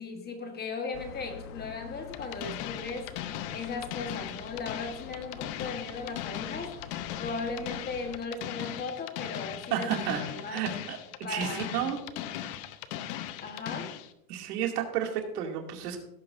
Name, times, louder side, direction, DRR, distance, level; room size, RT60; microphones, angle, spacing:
voice 1, 0.0-9.9 10.3-10.6 11.2-11.9 13.4-13.9, left 4 dB, 20° left, 5 dB, 1.2 m, -37 dB
Bloor St Construction, 0.9-8.2, left 7 dB, 70° left, 1.1 m, -46 dB
sound 1, 2.1-14.1, left 12 dB, 45° left, 0.8 m, -38 dB
voice 2, 9.7-11.0 11.3-12.0 14.3-16.0, right 9 dB, 75° right, 2 dB, 2.5 m, -32 dB
17.0 x 8.5 x 2.5 m, 0.80 s
supercardioid pair, 150°, 47 cm